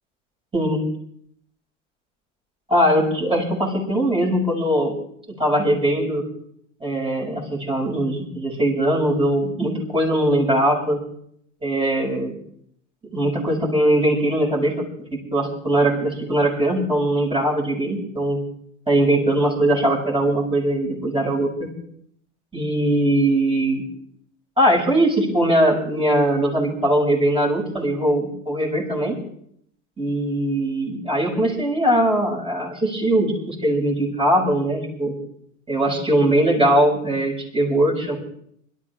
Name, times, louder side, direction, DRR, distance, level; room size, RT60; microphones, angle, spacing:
voice 1, 2.7-4.9 5.4-6.2 6.8-11.0 11.6-12.3 13.1-14.9 15.1-18.4 18.9-21.7 22.5-23.8 24.6-29.2 30.0-35.1 35.7-38.1, right 1 dB, 15° right, -2 dB, 7.4 m, -20 dB
26.0 x 13.5 x 3.8 m, 0.68 s
hypercardioid pair, 80°, 37 cm